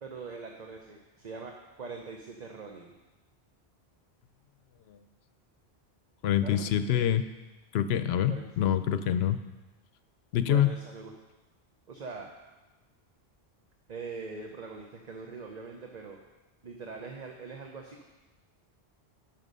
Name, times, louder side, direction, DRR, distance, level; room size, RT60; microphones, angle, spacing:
voice 1, 0.0-3.0 6.4-6.7 8.3-8.4 10.4-11.1 11.9-12.3 13.9-16.2 16.6-18.0, right 4 dB, 45° right, 2 dB, 0.9 m, -42 dB
voice 2, 6.2-7.2 7.7-9.4 10.3-10.7, left 10 dB, 75° left, 11 dB, 0.8 m, -25 dB
11.5 x 6.0 x 5.4 m, 1.1 s
omnidirectional pair, 1.1 m